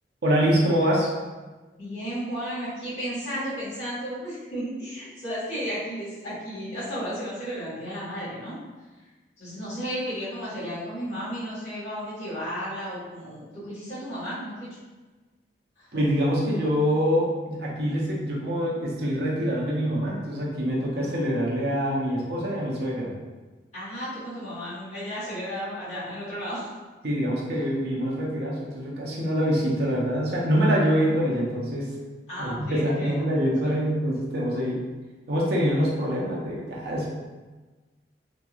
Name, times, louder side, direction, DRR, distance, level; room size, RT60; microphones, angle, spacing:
voice 1, 0.2-1.1 15.9-23.1 27.0-31.9 32.4-34.8 35.3-37.1, equal, 65° right, -4 dB, 0.7 m, -25 dB
voice 2, 1.8-8.6 9.4-14.8 15.8-15.9 20.9-21.2 23.7-26.7 32.3-33.1 33.6-33.7, equal, 40° left, -13 dB, 1.4 m, -33 dB
3.0 x 2.7 x 2.4 m, 1.2 s
head